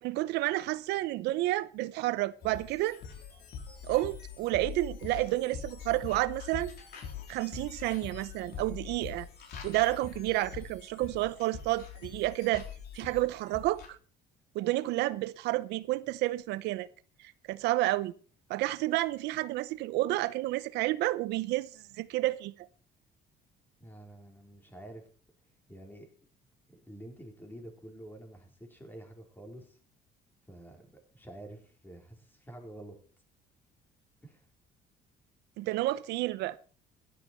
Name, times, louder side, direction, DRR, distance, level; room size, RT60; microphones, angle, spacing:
voice 1, 0.0-3.0 3.8-6.7 7.3-9.3 9.6-12.6 12.9-14.0 14.5-16.9 17.5-18.1 18.5-21.7 22.0-22.7 35.6-36.6, right 17 dB, 85° right, 0.7 m, -30 dB
sound 1, 2.4-13.9, left 7 dB, 70° left, 3.9 m, -44 dB
voice 2, 23.8-25.0 25.7-26.1 26.7-29.8 30.5-33.0 34.2-34.4, right 1 dB, 10° left, 4.3 m, -48 dB
15.0 x 11.0 x 4.5 m
cardioid pair, 110°, 17 cm